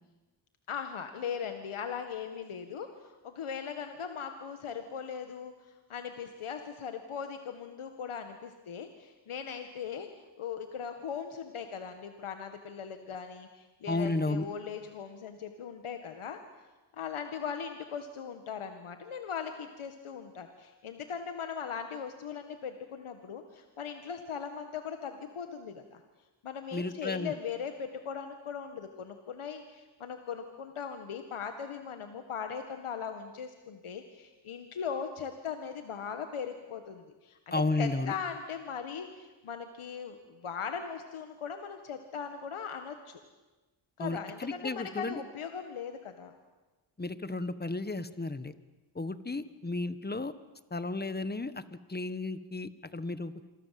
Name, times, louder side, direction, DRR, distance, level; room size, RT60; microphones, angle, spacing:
voice 1, 0.7-16.4 16.9-26.0 26.4-43.2 44.0-46.3, left 7 dB, 90° left, 6 dB, 1.9 m, -39 dB
voice 2, 13.9-14.5 26.7-27.3 37.5-38.1 44.0-45.2 47.0-48.5 48.9-50.3 50.7-51.6 51.9-53.3, left 2 dB, 20° left, 13 dB, 1.5 m, -33 dB
27.5 x 24.0 x 7.8 m, 1.2 s
cardioid pair, 80°, 48 cm